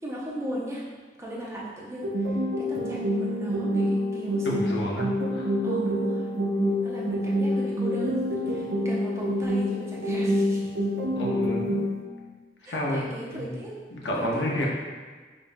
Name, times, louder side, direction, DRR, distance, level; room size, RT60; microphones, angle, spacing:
voice 1, 0.0-0.9 1.2-4.7 5.6-6.3 6.8-10.6 12.6-13.7 14.2-14.7, right 1 dB, 15° right, -6 dB, 0.5 m, -36 dB
sound 1, 2.0-12.0, equal, 75° right, 0.4 m, -27 dB
voice 2, 4.4-5.5 11.1-11.8 12.6-13.0 13.3-13.6 13.9-14.7, left 1 dB, 80° left, -2 dB, 0.6 m, -30 dB
4.9 x 2.3 x 2.5 m, 1.4 s
head